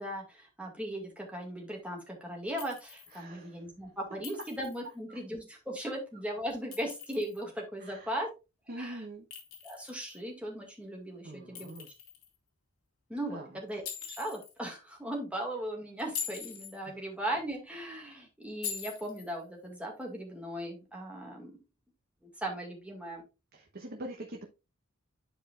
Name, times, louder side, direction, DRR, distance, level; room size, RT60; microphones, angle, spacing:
voice 1, 0.0-8.3 8.8-9.0 9.6-11.7 13.1-21.5 22.4-23.2, right 1 dB, 5° right, -1 dB, 2.1 m, -38 dB
Chink clink, 2.6-3.2 4.2-4.9 6.5-7.4 9.3-10.2 11.5-12.3 13.8-14.5 16.0-16.8 18.6-19.3, left 8 dB, 80° left, 2.2 m, -42 dB
voice 2, 3.1-3.6 5.1-5.2 7.8-8.2 8.7-9.3 11.2-11.9 13.3-13.5 16.9-17.0 23.5-24.5, right 1 dB, 45° right, 1 dB, 1.1 m, -44 dB
11.0 x 4.9 x 2.5 m, 0.28 s
head